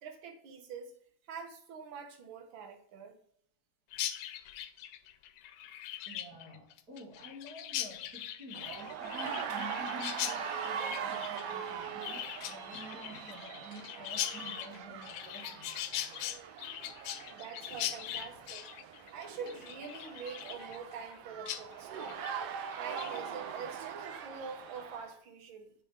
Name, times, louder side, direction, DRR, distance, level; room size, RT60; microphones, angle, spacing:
voice 1, 0.0-0.9 1.3-3.2 17.2-18.6 19.1-25.7, right 6 dB, 65° right, 4 dB, 1.2 m, -45 dB
Chirp tweet, 3.9-21.2 21.5-21.6 21.9-22.3 22.7-23.2, left 12 dB, 85° left, 1.5 m, -41 dB
voice 2, 6.0-15.7, right 1 dB, 50° right, -4 dB, 1.1 m, -49 dB
sound 1, 8.5-25.1, right 7 dB, 90° right, 1.3 m, -41 dB
8.2 x 3.5 x 4.3 m, 0.67 s
omnidirectional pair, 3.4 m